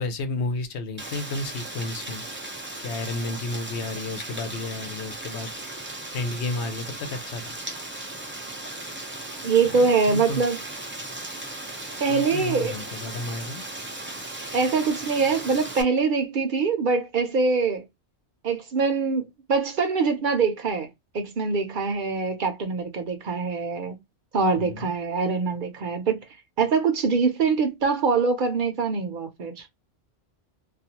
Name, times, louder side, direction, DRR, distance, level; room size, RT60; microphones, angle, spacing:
voice 1, 0.0-2.2 2.8-5.5 6.1-7.5 9.7-10.4 12.1-13.6 24.6-24.9, left 2 dB, 85° left, 0.9 m, -32 dB
Rain, 1.0-15.8, right 2 dB, 15° right, 0.4 m, -37 dB
voice 2, 9.4-10.6 12.0-12.7 14.5-17.8 18.4-19.2 19.5-20.9 21.1-24.0 24.3-26.2 26.6-29.7, right 4 dB, 55° right, 0.7 m, -23 dB
2.4 x 2.3 x 2.7 m
omnidirectional pair, 1.1 m